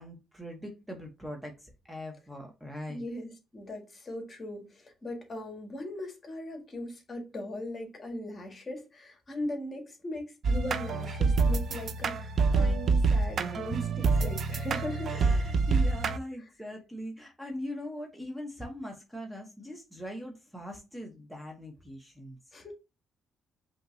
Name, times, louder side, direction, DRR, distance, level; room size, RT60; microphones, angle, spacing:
voice 1, 0.0-3.0 14.2-14.3 15.1-22.4, left 1 dB, 5° right, 1.0 m, -41 dB
voice 2, 2.9-15.1 16.4-16.5 22.5-22.7, left 1 dB, 30° left, 1.7 m, -39 dB
sound 1, 10.4-16.2, right 4 dB, 55° right, 0.5 m, -27 dB
5.4 x 3.0 x 2.7 m
cardioid pair, 90°, 0 cm